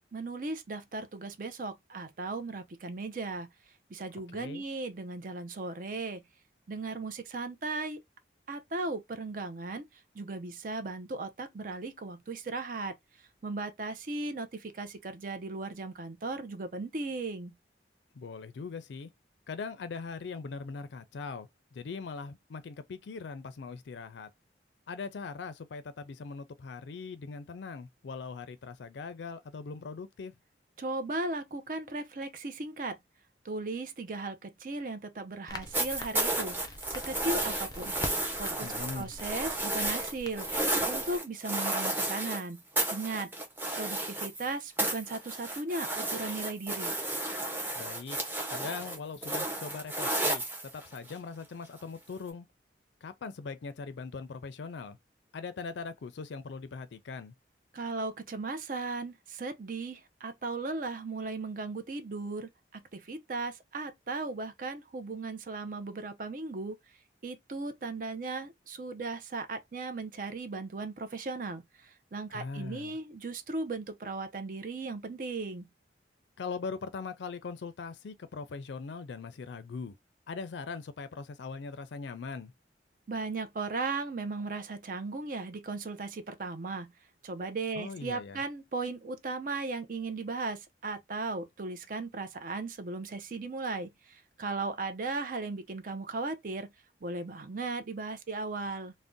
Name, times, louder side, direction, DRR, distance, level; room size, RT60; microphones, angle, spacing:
voice 1, 0.0-3.5 3.9-6.2 6.7-8.0 8.5-9.8 10.1-12.9 13.4-17.5 30.8-33.0 33.4-37.9 38.4-38.7 38.9-40.5 40.9-42.6 42.9-43.3 43.7-46.9 57.7-66.8 67.2-75.7 83.1-86.9 87.2-96.7 97.0-98.9, right 3 dB, 50° right, 0.5 m, -37 dB
voice 2, 4.3-4.6 18.2-19.1 19.5-24.3 24.9-30.3 38.6-39.1 47.8-48.2 48.5-50.4 50.7-52.5 53.0-55.0 55.3-57.3 72.3-73.0 76.4-79.9 80.3-82.5 87.8-88.4, left 4 dB, 80° left, 0.4 m, -40 dB
Crackle, 35.5-41.2, left 2 dB, 20° left, 0.4 m, -45 dB
sound 1, 35.7-42.4 42.8-44.5 44.8-51.1 52.3-52.4, right 2 dB, 10° right, 0.7 m, -32 dB
2.6 x 2.1 x 3.6 m
head